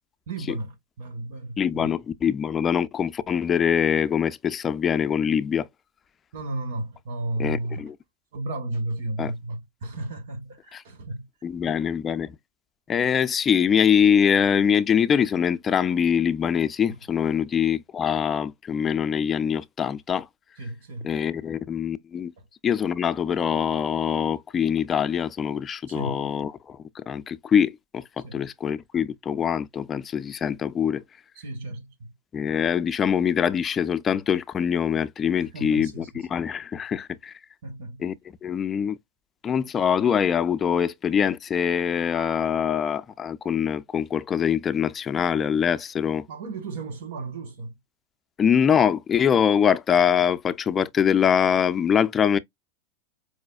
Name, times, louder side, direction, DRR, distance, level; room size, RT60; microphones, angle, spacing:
voice 1, 0.3-1.9 6.3-7.9 8.3-11.3 16.9-17.0 20.6-21.1 25.9-26.3 28.2-28.4 31.3-32.1 35.4-36.1 37.6-38.0 46.3-47.7, right 2 dB, 70° right, 1.5 m, -34 dB
voice 2, 1.6-5.7 7.4-7.9 9.2-9.3 10.7-10.8 11.4-12.3 12.9-20.3 21.0-22.3 22.6-31.0 32.3-37.3 38.0-38.1 38.4-39.0 39.4-46.3 48.4-52.4, left 8 dB, 25° left, 0.4 m, -23 dB
4.8 x 2.2 x 2.3 m
hypercardioid pair, 105°, 0 cm